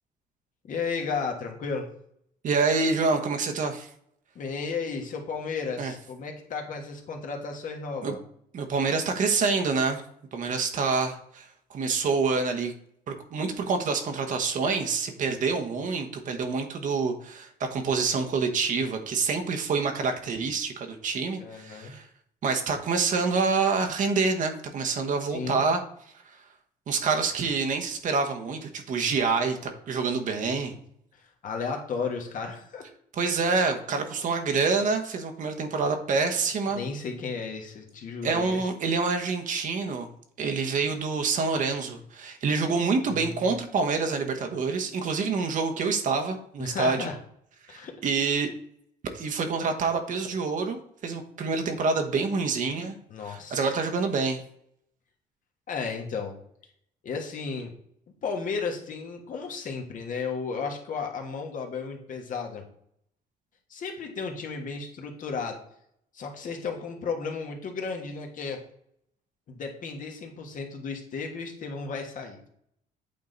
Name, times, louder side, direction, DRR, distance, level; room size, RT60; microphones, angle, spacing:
voice 1, 0.6-1.8 4.3-8.2 21.4-21.9 25.3-25.7 31.4-32.9 36.7-38.6 43.1-43.5 46.6-47.1 47.7-47.9 53.1-53.7 55.7-56.3 57.0-57.7 58.2-62.6 63.7-65.6 66.1-68.6 69.5-72.4, left 5 dB, 50° left, 2 dB, 1.5 m, -34 dB
voice 2, 2.4-3.9 5.8-5.9 8.0-8.2 8.5-10.0 10.3-12.7 13.1-22.1 22.4-25.8 26.9-30.7 33.1-36.8 38.2-40.1 40.4-47.1 47.7-48.5 49.1-50.8 51.0-53.0 53.2-54.4, right 4 dB, 50° right, 4 dB, 1.1 m, -27 dB
8.7 x 3.8 x 3.9 m, 0.68 s
cardioid pair, 110°, 17 cm